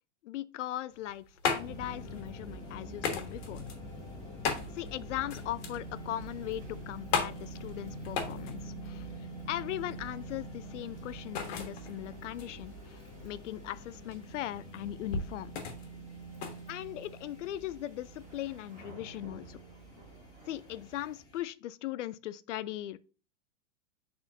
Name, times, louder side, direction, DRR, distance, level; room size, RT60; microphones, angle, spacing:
voice 1, 0.2-3.6 4.7-9.1 9.5-15.5 16.7-19.6 20.5-23.0, left 13 dB, 90° left, 0.5 m, -39 dB
sound 1, 0.9-17.5, left 5 dB, 60° left, 1.5 m, -38 dB
sound 2, 1.4-21.2, right 1 dB, 25° right, 3.0 m, -60 dB
sound 3, 1.6-21.4, right 1 dB, 10° left, 0.7 m, -45 dB
9.0 x 3.8 x 2.7 m
supercardioid pair, 165°, 36 cm